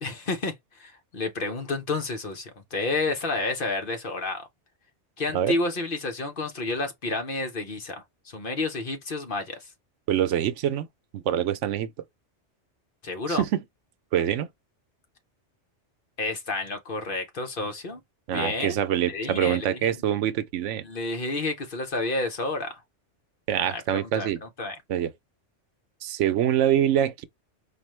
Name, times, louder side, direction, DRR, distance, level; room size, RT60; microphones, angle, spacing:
voice 1, 0.0-4.4 5.2-9.7 13.0-13.4 16.2-18.0 18.3-18.8 19.1-20.0 20.8-22.8 23.7-24.8, left 3 dB, 50° left, 1.0 m, -30 dB
voice 2, 10.1-10.9 11.1-11.9 13.3-13.6 14.1-14.5 18.3-20.8 23.5-24.4 24.9-25.1 26.0-27.2, right 10 dB, 85° right, 0.9 m, -25 dB
5.0 x 2.5 x 3.1 m
omnidirectional pair, 1.2 m